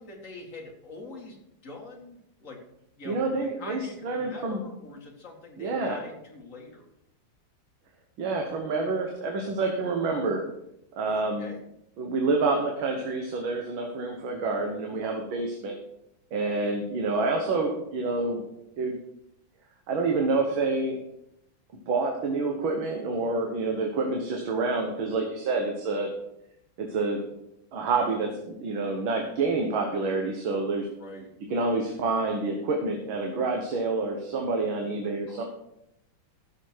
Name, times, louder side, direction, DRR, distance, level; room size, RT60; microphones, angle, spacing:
voice 1, 0.0-1.4 1.6-2.6 3.0-6.9 11.0-11.6 17.4-17.8 31.0-31.3 35.3-35.4, left 3 dB, 35° left, 0 dB, 2.2 m, -44 dB
voice 2, 3.1-4.6 5.6-6.0 8.2-10.4 10.9-11.5 12.0-15.7 16.3-18.5 18.8-19.0 19.9-21.0 21.9-26.1 26.8-27.2 27.7-30.9 31.5-35.4, right 3 dB, 65° right, 2 dB, 2.0 m, -28 dB
14.5 x 7.2 x 4.6 m, 0.80 s
omnidirectional pair, 2.4 m